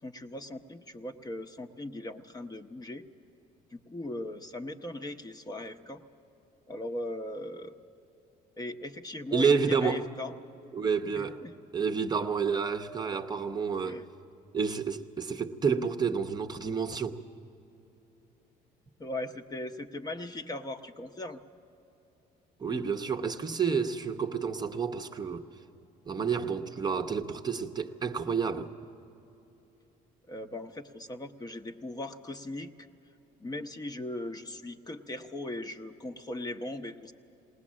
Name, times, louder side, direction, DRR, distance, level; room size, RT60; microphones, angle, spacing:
voice 1, 0.0-3.0 3.7-6.0 6.7-7.7 8.6-10.3 11.1-11.5 13.8-14.0 19.0-21.4 30.3-32.7 33.4-37.1, left 1 dB, 25° left, 0.8 m, -39 dB
voice 2, 9.3-10.0 10.7-11.4 11.7-14.0 14.5-17.2 22.6-25.5 26.1-28.7, right 5 dB, 25° right, 0.7 m, -29 dB
20.0 x 19.0 x 7.4 m
cardioid pair, 110°, 17 cm